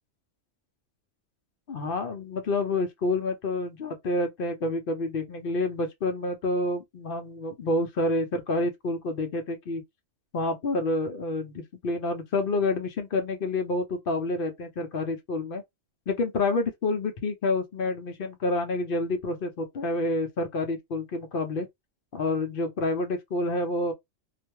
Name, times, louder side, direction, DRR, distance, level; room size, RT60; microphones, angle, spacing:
voice 1, 1.7-9.8 10.3-15.6 16.1-21.7 22.1-23.9, left 2 dB, 55° left, 0.7 m, -28 dB
2.5 x 2.1 x 2.9 m
omnidirectional pair, 1.3 m